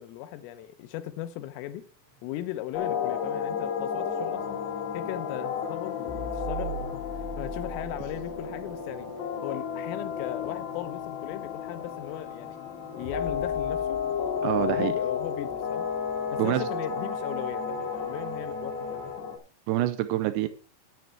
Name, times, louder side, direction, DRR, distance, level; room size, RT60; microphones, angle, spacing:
voice 1, 0.0-1.8 2.2-4.6 4.9-9.1 9.4-12.6 13.0-14.0 14.5-15.9 16.3-19.3, left 13 dB, 85° left, 3.5 m, -37 dB
sound 1, 1.6-19.2, right 5 dB, 25° right, 7.2 m, -45 dB
sound 2, 2.7-19.4, left 7 dB, 60° left, 3.5 m, -32 dB
voice 2, 14.4-14.9 16.4-16.7 19.7-20.5, right 15 dB, 90° right, 2.5 m, -26 dB
10.5 x 9.5 x 4.5 m
omnidirectional pair, 5.9 m